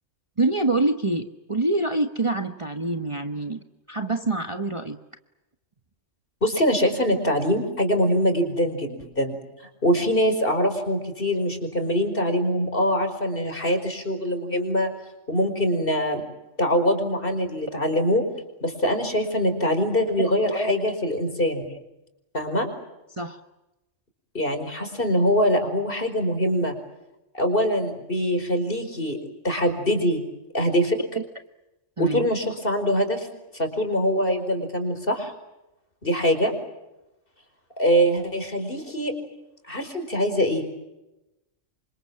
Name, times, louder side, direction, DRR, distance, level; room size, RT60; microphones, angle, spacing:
voice 1, 0.4-3.6 3.9-5.0 20.2-20.7 21.7-21.8 23.1-23.4 31.1-31.2 32.0-32.3, right 2 dB, 25° right, 7 dB, 1.3 m, -26 dB
voice 2, 6.4-9.4 9.8-14.9 15.3-16.2 16.6-18.2 18.6-21.7 22.3-22.7 24.3-26.8 27.3-29.2 29.4-30.2 30.5-31.0 32.0-33.3 33.5-35.3 36.0-36.5 37.8-39.1 39.7-40.6, equal, 45° left, 6 dB, 5.2 m, -23 dB
28.0 x 26.0 x 7.5 m, 0.94 s
omnidirectional pair, 1.3 m